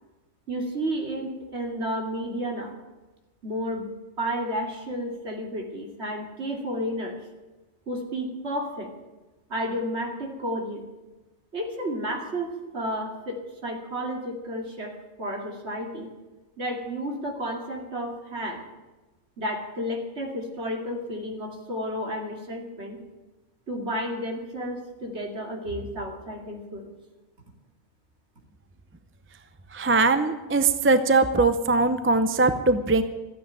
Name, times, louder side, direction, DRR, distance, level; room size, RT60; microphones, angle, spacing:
voice 1, 0.5-2.8 3.4-3.9 4.2-7.2 7.9-8.9 9.5-10.9 11.5-16.1 16.6-18.6 19.4-23.0 23.7-26.9, equal, 60° right, 2 dB, 2.7 m, -32 dB
voice 2, 29.7-33.0, right 3 dB, 15° right, 10 dB, 0.6 m, -21 dB
14.0 x 9.3 x 9.2 m, 1.1 s
omnidirectional pair, 1.3 m